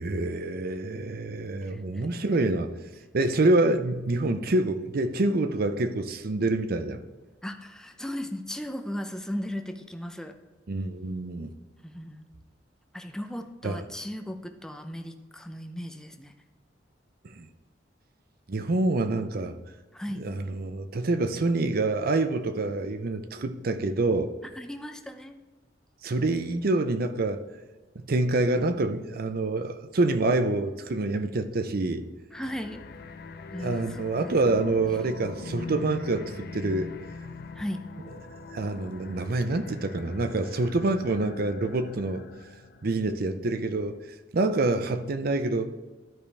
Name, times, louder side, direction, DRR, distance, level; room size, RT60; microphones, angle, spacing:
voice 1, 0.0-2.7 3.1-7.0 10.7-11.5 13.6-13.8 17.4-17.5 18.5-19.5 20.2-24.3 26.0-27.4 28.1-32.1 33.6-36.9 38.5-42.2 42.8-44.0 44.3-45.7, right 2 dB, 55° right, 9 dB, 0.6 m, -26 dB
voice 2, 1.7-2.1 7.4-10.4 11.8-12.2 12.9-16.3 19.9-20.2 24.5-25.4 32.3-32.8 33.5-34.7 37.5-37.8, equal, 5° left, 6 dB, 0.6 m, -37 dB
sound 1, 32.3-42.9, left 4 dB, 55° left, 0.5 m, -41 dB
12.5 x 5.2 x 3.3 m, 1.3 s
head